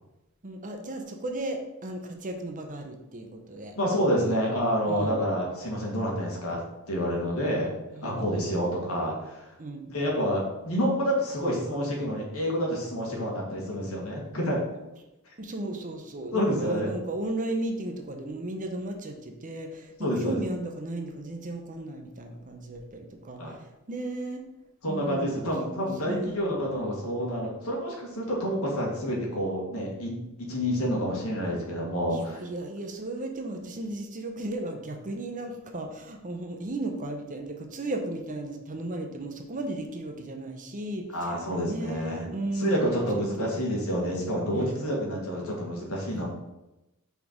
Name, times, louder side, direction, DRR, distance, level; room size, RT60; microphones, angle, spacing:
voice 1, 0.4-3.7 4.2-4.4 4.8-5.2 7.9-8.2 9.6-9.9 15.4-24.4 24.9-26.5 32.1-43.2 43.5-43.7 44.5-45.2 46.1-46.2, right 2 dB, 35° right, 4 dB, 0.7 m, -35 dB
voice 2, 3.7-6.6 6.9-7.7 8.0-9.5 9.9-14.6 16.3-16.9 20.0-20.4 23.4-23.6 24.8-32.4 41.1-46.3, equal, 70° left, -2 dB, 1.8 m, -28 dB
5.3 x 4.3 x 4.5 m, 0.97 s
head